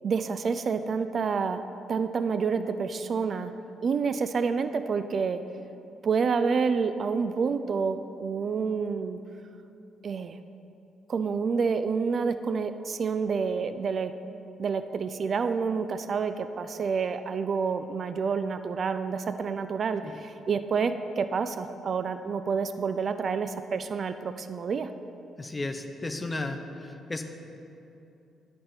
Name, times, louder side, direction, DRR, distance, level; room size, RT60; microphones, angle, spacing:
voice 1, 0.0-1.6 1.9-3.5 3.8-5.4 6.0-9.2 10.0-10.4 11.1-14.1 14.6-24.9, right 5 dB, 50° right, 10 dB, 0.3 m, -28 dB
voice 2, 25.4-27.3, left 2 dB, 20° left, 7 dB, 0.6 m, -34 dB
11.0 x 5.1 x 4.3 m, 2.8 s
cardioid pair, 90°, 0 cm